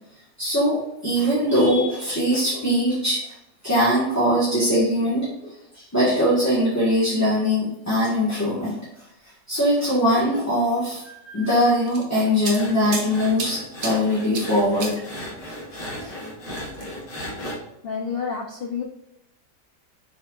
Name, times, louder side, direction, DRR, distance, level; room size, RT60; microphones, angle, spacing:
voice 1, 0.4-3.2 3.6-8.8 9.5-15.2 15.7-16.1, equal, 10° left, -8 dB, 1.7 m, -22 dB
sound 1, 11.6-13.1 13.4-13.9 14.3-14.5 14.8-15.0 16.5-17.0, right 4 dB, 85° right, 1.9 m, -31 dB
sound 2, 12.4-17.6, left 1 dB, 80° left, 2.6 m, -36 dB
voice 2, 17.8-18.8, left 6 dB, 55° left, 0 dB, 0.6 m, -29 dB
7.3 x 5.4 x 2.5 m, 0.82 s
omnidirectional pair, 1.8 m